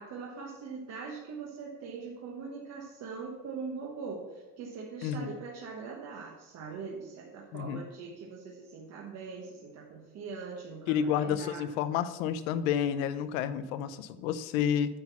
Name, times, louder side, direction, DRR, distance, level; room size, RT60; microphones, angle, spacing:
voice 1, 0.0-11.7, right 5 dB, 35° right, -2 dB, 1.3 m, -42 dB
voice 2, 5.0-5.3 7.5-7.8 10.9-14.9, left 8 dB, 65° left, 13 dB, 0.8 m, -30 dB
8.9 x 4.0 x 7.2 m, 1.2 s
supercardioid pair, 150°, 45 cm